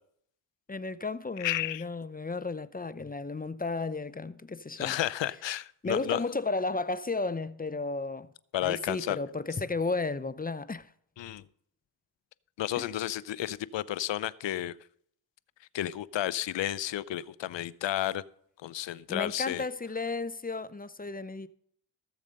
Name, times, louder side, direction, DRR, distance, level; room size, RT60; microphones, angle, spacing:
voice 1, 0.7-5.0 5.8-8.3 8.6-10.9 12.7-12.9 19.1-21.5, left 3 dB, 20° left, 0.7 m, -33 dB
voice 2, 1.4-1.8 4.8-6.2 8.5-9.2 11.2-11.4 12.6-14.8 15.7-18.2 18.6-19.6, left 13 dB, 65° left, 0.7 m, -32 dB
14.5 x 7.2 x 5.3 m
cardioid pair, 55°, 48 cm